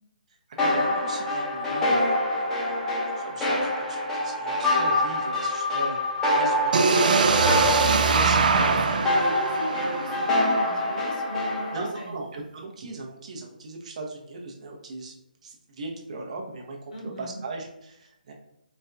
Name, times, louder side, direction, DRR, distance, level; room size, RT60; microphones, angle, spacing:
sound 1, 0.6-11.9, left 1 dB, 10° left, 0.6 m, -26 dB
voice 1, 0.6-2.9 3.2-9.1 11.7-15.1 15.4-16.8 17.0-18.3, right 3 dB, 45° right, 1 dB, 0.7 m, -38 dB
sound 2, 6.7-10.6, right 4 dB, 60° right, 0.4 m, -22 dB
voice 2, 7.4-12.1 16.9-17.4, right 1 dB, 60° left, 0 dB, 0.9 m, -38 dB
4.3 x 2.2 x 2.5 m, 0.82 s
hypercardioid pair, 155°, 5 cm